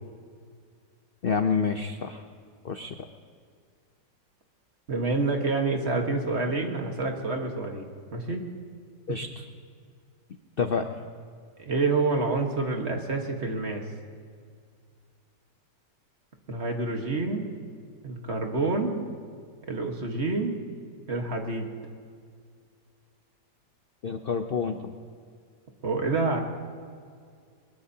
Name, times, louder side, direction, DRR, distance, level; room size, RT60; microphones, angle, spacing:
voice 1, 1.2-2.2 2.6-2.9 9.1-9.4 10.6-10.9 24.0-24.9, left 5 dB, 65° left, 6 dB, 0.5 m, -28 dB
voice 2, 4.9-8.5 11.6-13.8 16.5-17.5 18.0-19.1 19.7-20.6 21.1-21.7 25.8-26.4, right 3 dB, 40° right, 2 dB, 1.6 m, -28 dB
22.5 x 21.0 x 2.8 m, 2.1 s
omnidirectional pair, 1.9 m